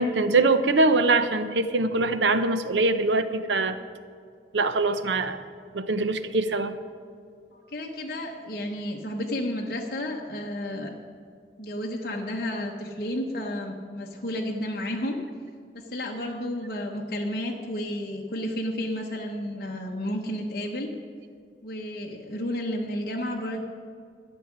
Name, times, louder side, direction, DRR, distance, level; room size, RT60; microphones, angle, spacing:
voice 1, 0.0-3.8 4.5-5.4 5.7-6.7, right 3 dB, 85° right, 11 dB, 0.7 m, -23 dB
voice 2, 7.5-10.9 11.6-15.2 15.7-20.9 21.6-23.6, left 1 dB, 55° left, -1 dB, 1.1 m, -32 dB
12.5 x 6.3 x 9.7 m, 2.1 s
head